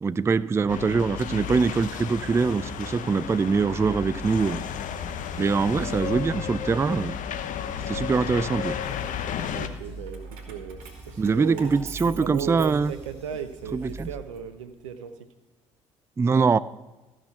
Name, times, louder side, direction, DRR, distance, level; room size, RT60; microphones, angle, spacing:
voice 1, 0.0-4.6 5.4-7.2 7.9-8.8 11.2-12.9 13.7-14.1 16.2-16.6, right 4 dB, 15° right, 17 dB, 0.3 m, -23 dB
sound 1, 0.7-9.7, left 8 dB, 55° left, 0.8 m, -33 dB
sound 2, 3.2-14.2, right 2 dB, 35° left, 4.3 m, -43 dB
voice 2, 9.5-15.2, right 8 dB, 80° right, 9 dB, 0.8 m, -36 dB
Keys jangling, 10.1-13.2 13.7-15.0, right 6 dB, 65° right, 1.9 m, -45 dB
14.0 x 6.2 x 5.6 m, 1.1 s
hypercardioid pair, 55°, 16 cm